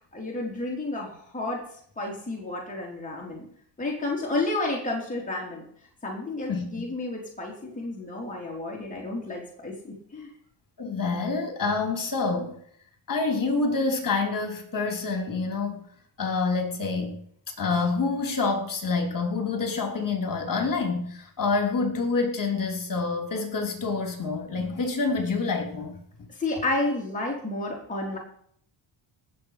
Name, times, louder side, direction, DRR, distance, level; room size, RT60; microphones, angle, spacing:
voice 1, 0.0-3.4 3.8-5.6 6.0-9.7 10.1-10.3 26.3-28.2, left 2 dB, 15° left, -3 dB, 3.5 m, -31 dB
voice 2, 10.8-12.6 13.1-15.9 16.2-17.2 17.6-26.0, left 4 dB, 40° left, 3 dB, 3.5 m, -27 dB
18.0 x 7.5 x 5.0 m, 0.64 s
cardioid pair, 90°, 50 cm